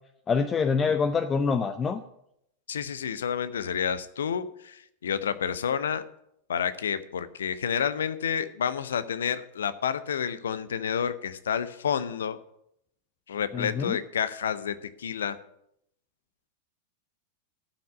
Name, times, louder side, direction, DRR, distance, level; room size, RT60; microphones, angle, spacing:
voice 1, 0.3-2.0 13.5-14.0, left 5 dB, 20° left, 10 dB, 0.6 m, -25 dB
voice 2, 2.7-6.0 6.5-12.4 13.3-15.4, left 7 dB, 65° left, 14 dB, 0.7 m, -29 dB
11.5 x 6.0 x 8.0 m, 0.77 s
figure-of-eight pair, 90°, 0 cm